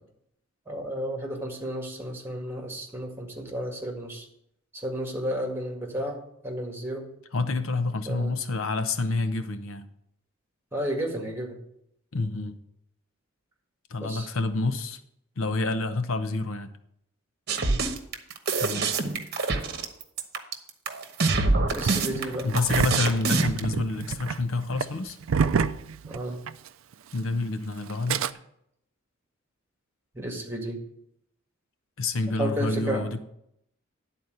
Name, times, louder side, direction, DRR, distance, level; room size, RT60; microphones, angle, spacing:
voice 1, 0.7-4.3 4.7-6.2 6.4-7.1 8.1-8.3 10.7-11.6 14.0-14.3 17.6-17.8 21.7-22.5 26.1-26.4 30.1-30.8 32.4-33.0, equal, 10° right, 1 dB, 1.9 m, -32 dB
voice 2, 7.3-9.9 12.1-12.6 13.9-15.0 15.4-16.7 18.6-18.9 22.4-25.2 27.1-28.2 32.0-33.2, left 3 dB, 75° left, 10 dB, 0.7 m, -28 dB
sound 1, 17.5-23.6, right 3 dB, 50° right, 1.0 m, -25 dB
Engine starting, 21.8-26.7 26.9-27.0 27.9-28.3, right 6 dB, 75° right, 0.4 m, -28 dB
10.5 x 4.2 x 7.8 m, 0.75 s
head